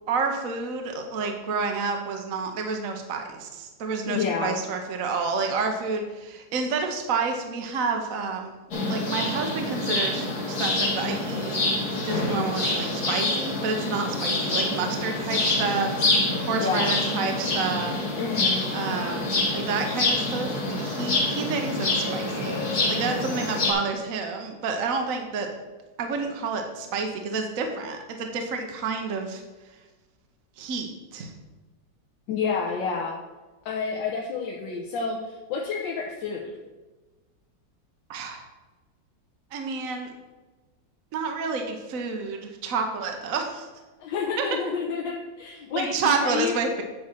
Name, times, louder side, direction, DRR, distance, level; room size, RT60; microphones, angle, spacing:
voice 1, 0.1-8.5 8.9-11.6 12.0-17.9 18.7-19.2 19.5-25.5 26.0-29.4 30.6-31.3 38.1-38.5 39.5-40.1 41.1-43.7 44.4-44.5 45.7-46.8, right 4 dB, 55° right, 4 dB, 1.1 m, -29 dB
voice 2, 4.1-4.6 16.6-16.9 18.2-18.7 32.3-33.1 33.6-36.5 44.0-46.5, left 5 dB, 80° left, 0 dB, 1.5 m, -29 dB
sound 1, 8.7-23.7, left 2 dB, 55° left, 2.0 m, -26 dB
8.7 x 4.3 x 5.8 m, 1.2 s
omnidirectional pair, 2.0 m